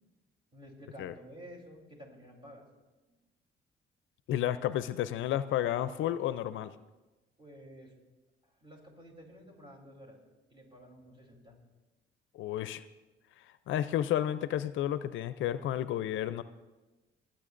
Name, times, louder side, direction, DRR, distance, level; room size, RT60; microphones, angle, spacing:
voice 1, 0.5-2.7 3.1-3.2 7.4-7.9 8.4-10.2 10.5-11.6, equal, 25° right, 0 dB, 3.3 m, -51 dB
voice 2, 4.3-6.7 12.3-12.8 13.7-16.4, left 11 dB, 80° left, 13 dB, 0.5 m, -31 dB
26.5 x 8.8 x 2.5 m, 1.1 s
cardioid pair, 90°, 20 cm